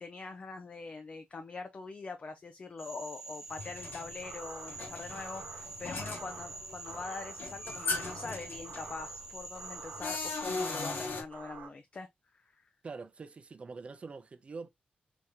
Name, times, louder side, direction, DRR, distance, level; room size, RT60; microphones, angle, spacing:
voice 1, 0.0-12.1 12.3-12.7, left 4 dB, 40° left, 0.5 m, -43 dB
Frog, 2.8-11.1, right 2 dB, 15° right, 0.8 m, -46 dB
sound 1, 3.5-11.2, left 4 dB, 75° left, 1.0 m, -39 dB
sound 2, 3.8-11.7, right 5 dB, 80° right, 0.8 m, -50 dB
voice 2, 12.8-14.7, right 4 dB, 40° right, 0.5 m, -44 dB
3.5 x 2.9 x 2.6 m
wide cardioid pair, 110°, 3 cm